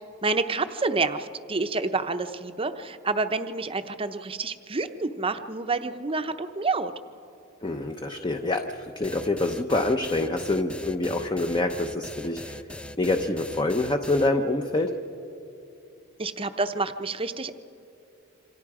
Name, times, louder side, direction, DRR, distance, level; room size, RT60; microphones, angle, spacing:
voice 1, 0.2-6.9 16.2-17.5, right 3 dB, 25° right, 9 dB, 0.8 m, -28 dB
voice 2, 7.6-12.6 13.0-15.0, left 2 dB, 20° left, 5 dB, 0.8 m, -26 dB
sound 1, 9.0-14.3, left 1 dB, 5° left, 0.4 m, -40 dB
27.0 x 25.5 x 4.9 m, 2.7 s
head